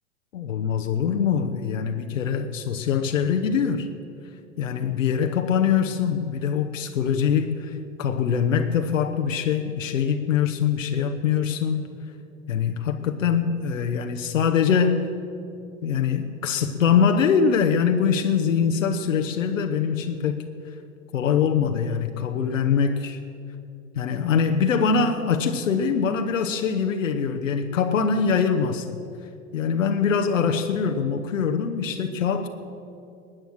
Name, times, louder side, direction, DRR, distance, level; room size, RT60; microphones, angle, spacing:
voice 1, 0.3-3.9 4.6-11.9 12.5-15.1 15.8-20.4 21.1-23.2 23.9-29.0 29.5-32.5, left 6 dB, 75° left, 5 dB, 0.9 m, -23 dB
19.5 x 9.1 x 6.2 m, 2.7 s
figure-of-eight pair, 85°, 39 cm